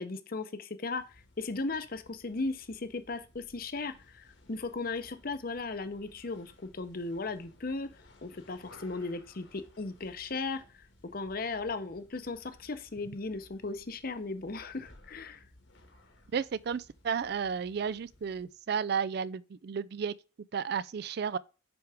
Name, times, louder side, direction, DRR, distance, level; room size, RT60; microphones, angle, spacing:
voice 1, 0.0-7.9 8.2-10.6 11.0-15.4, left 3 dB, 50° left, 0.8 m, -37 dB
sound 1, 0.9-18.6, left 1 dB, 80° left, 1.9 m, -60 dB
voice 2, 16.3-20.1 20.5-21.4, right 6 dB, 55° right, 0.4 m, -33 dB
11.0 x 4.7 x 3.5 m
head